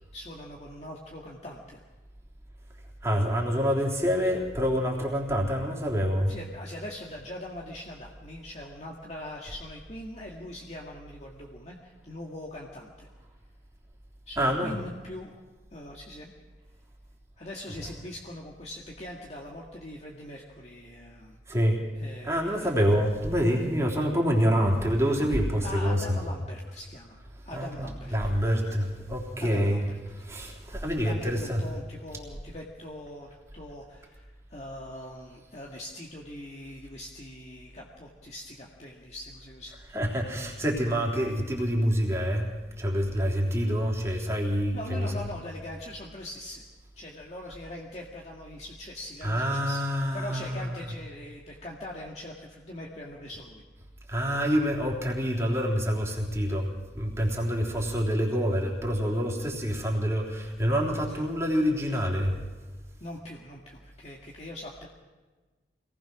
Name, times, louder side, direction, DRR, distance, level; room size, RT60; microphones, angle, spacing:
voice 1, 0.1-1.8 6.3-13.1 14.3-15.3 15.7-16.3 17.4-21.4 21.9-22.8 25.6-27.2 27.4-28.1 29.4-30.0 31.0-34.2 34.5-39.7 44.7-46.6 47.0-49.8 50.1-53.6 61.1-61.2 63.0-64.9, left 1 dB, 35° left, -2 dB, 1.9 m, -42 dB
voice 2, 3.0-6.3 14.4-14.8 21.5-21.8 22.2-26.2 27.5-29.9 30.2-31.6 39.9-42.4 42.8-45.1 49.2-50.9 54.1-62.4, equal, 15° right, -1 dB, 3.6 m, -27 dB
25.5 x 19.0 x 6.2 m, 1.3 s
head